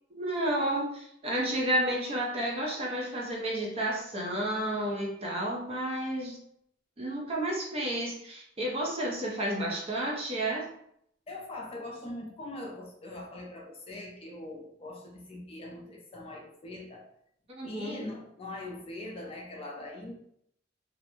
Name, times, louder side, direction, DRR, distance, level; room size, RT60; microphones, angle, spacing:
voice 1, 0.1-6.4 7.0-10.7 17.5-18.0, right 1 dB, 30° right, -2 dB, 0.6 m, -31 dB
voice 2, 11.3-17.1 17.6-20.1, left 2 dB, 30° left, -1 dB, 0.4 m, -42 dB
2.4 x 2.1 x 2.9 m, 0.72 s
head